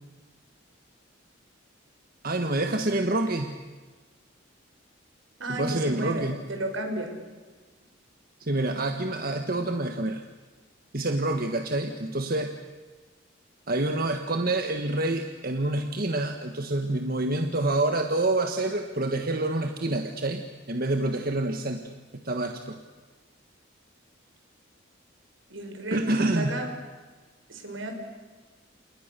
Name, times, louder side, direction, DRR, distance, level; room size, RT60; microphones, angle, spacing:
voice 1, 2.2-3.5 5.5-6.4 8.4-10.2 10.9-12.5 13.7-21.9 22.2-22.8 25.9-26.6, right 2 dB, 50° right, 5 dB, 1.6 m, -27 dB
voice 2, 5.4-7.1 25.5-26.7 27.5-27.9, right 1 dB, 75° right, 4 dB, 5.8 m, -33 dB
30.0 x 28.5 x 6.9 m, 1.4 s
head